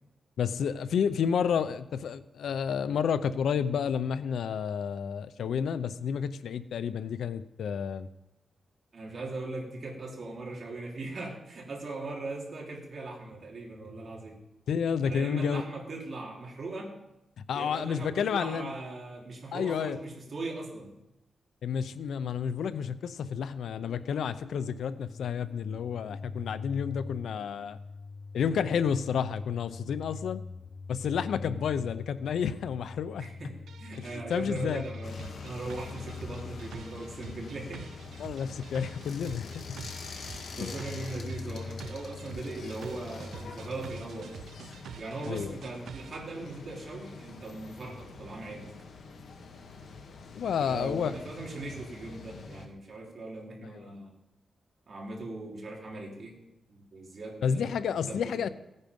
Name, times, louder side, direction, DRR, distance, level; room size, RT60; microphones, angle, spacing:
voice 1, 0.4-8.1 14.7-15.6 17.5-18.7 19.5-20.0 21.6-27.8 28.3-30.4 30.9-33.3 34.0-34.8 38.2-39.8 40.6-40.7 45.3-45.6 50.4-51.1 53.8-53.9 57.4-58.5, left 7 dB, 85° left, 14 dB, 0.7 m, -30 dB
voice 2, 8.9-14.4 15.0-16.9 17.5-20.9 31.3-31.5 33.2-37.8 39.8-40.2 40.5-44.3 45.0-48.7 50.6-54.1 54.9-56.4 56.7-58.5, right 2 dB, 45° right, -1 dB, 3.6 m, -40 dB
sound 1, 24.9-44.0, left 4 dB, 45° left, 0.4 m, -44 dB
sound 2, 33.7-46.2, right 9 dB, 90° right, 0.4 m, -47 dB
sound 3, 35.0-52.7, left 4 dB, 65° left, 1.8 m, -46 dB
16.5 x 9.8 x 5.4 m, 0.91 s
wide cardioid pair, 140°, 0 cm